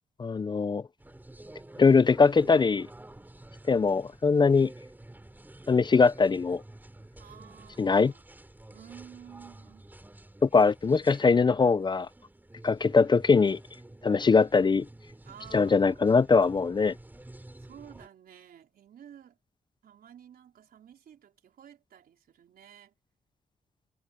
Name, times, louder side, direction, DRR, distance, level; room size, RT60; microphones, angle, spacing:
voice 1, 0.2-0.9 1.8-2.9 3.7-4.7 5.7-6.6 7.8-8.1 10.4-12.1 12.6-13.6 14.0-14.9 15.5-16.9, left 4 dB, 30° left, 0.5 m, -22 dB
sound 1, 1.0-18.1, right 1 dB, 10° right, 4.0 m, -50 dB
voice 2, 7.2-8.3 8.7-9.9 15.2-16.3 17.6-19.4 19.8-22.9, right 9 dB, 85° right, 4.2 m, -52 dB
cardioid pair, 110°, 15 cm